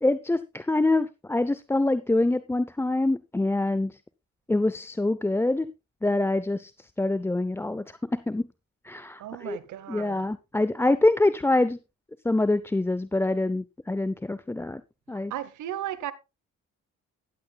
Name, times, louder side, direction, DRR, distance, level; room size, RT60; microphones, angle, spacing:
voice 1, 0.0-4.0 4.5-5.7 6.0-8.4 8.8-9.6 9.9-11.8 12.2-14.8 15.1-15.3, left 2 dB, 10° left, 0.6 m, -25 dB
voice 2, 9.2-10.2 15.3-16.1, right 12 dB, 75° right, 1.0 m, -35 dB
15.5 x 10.5 x 2.3 m
cardioid pair, 90°, 30 cm